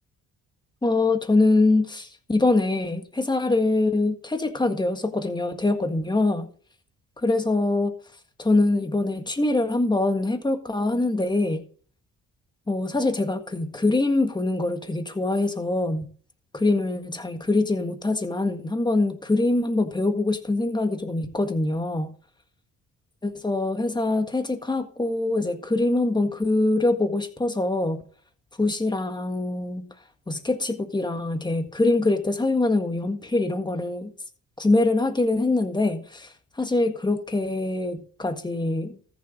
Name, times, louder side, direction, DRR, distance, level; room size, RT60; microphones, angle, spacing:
voice 1, 0.8-6.5 7.2-7.9 8.4-11.6 12.7-16.0 16.5-22.1 23.2-28.0 28.6-29.9 30.3-34.1 34.6-39.2, left 2 dB, 15° left, 1.7 m, -24 dB
14.0 x 7.1 x 3.8 m
cardioid pair, 90°, 30 cm